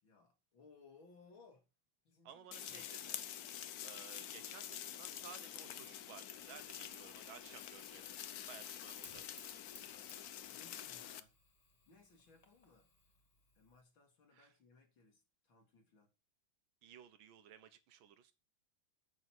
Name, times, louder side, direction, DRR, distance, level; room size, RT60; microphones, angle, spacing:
voice 1, 0.0-1.7 2.0-2.9 10.5-11.3 11.9-12.9 13.5-16.1, left 4 dB, 80° left, 3.1 m, -64 dB
voice 2, 2.3-3.2 3.6-8.2 8.5-9.5 14.3-14.5 16.8-18.3, right 9 dB, 80° right, 1.8 m, -57 dB
sound 1, 2.5-11.2, left 11 dB, 65° left, 1.0 m, -47 dB
Fire, 6.4-13.8, left 2 dB, 20° left, 1.5 m, -64 dB
8.1 x 6.6 x 6.1 m
omnidirectional pair, 2.1 m